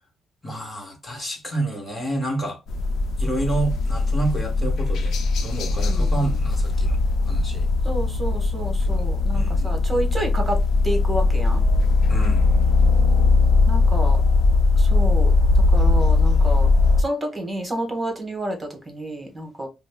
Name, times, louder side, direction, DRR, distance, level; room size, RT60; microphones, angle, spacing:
voice 1, 0.4-2.6 3.2-7.7 8.8-9.1 9.3-9.8 12.1-12.4, right 2 dB, 30° left, 1.2 m, -29 dB
sound 1, 2.7-17.0, left 3 dB, 70° left, 0.5 m, -19 dB
voice 2, 5.9-6.2 7.8-10.6 10.8-11.6 13.7-14.2 14.8-15.3 15.7-16.7 17.0-19.7, right 1 dB, 20° right, 1.2 m, -29 dB
5.0 x 2.0 x 2.2 m
cardioid pair, 90°, 0 cm